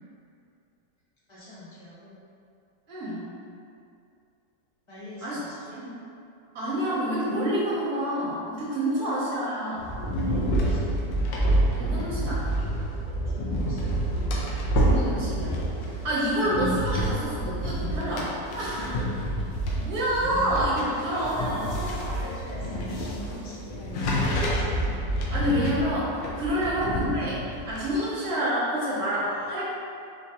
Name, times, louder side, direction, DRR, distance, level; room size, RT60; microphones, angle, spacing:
voice 1, 1.3-2.2 4.9-5.8 8.9-9.0 10.1-11.3 13.2-13.9 18.6-19.3 20.7-24.8 26.5-26.8 27.9-28.0, equal, 25° left, -10 dB, 0.6 m, -42 dB
voice 2, 2.9-3.2 5.2-5.4 5.7-5.9 6.5-9.9 11.7-12.6 14.7-15.6 15.9-18.8 19.8-21.6 25.3-27.4 27.7-29.6, equal, 65° right, -8 dB, 1.2 m, -28 dB
sound 1, 9.8-27.9, right 1 dB, 90° left, 1.3 m, -28 dB
4.5 x 2.5 x 2.7 m, 2.5 s
omnidirectional pair, 1.9 m